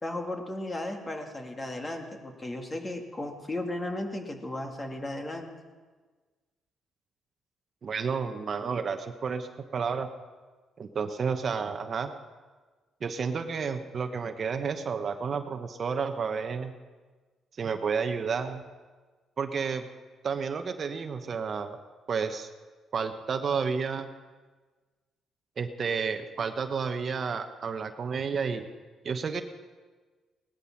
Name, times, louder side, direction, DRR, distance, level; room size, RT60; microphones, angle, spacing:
voice 1, 0.0-5.5, left 1 dB, 25° left, 3 dB, 2.2 m, -35 dB
voice 2, 7.8-10.1 10.8-12.1 13.0-16.7 17.6-18.6 19.4-19.9 20.2-21.8 22.1-22.5 22.9-24.1 25.6-28.6 29.0-29.4, right 5 dB, 50° right, 8 dB, 1.0 m, -31 dB
18.0 x 12.5 x 5.9 m, 1.4 s
cardioid pair, 90°, 0 cm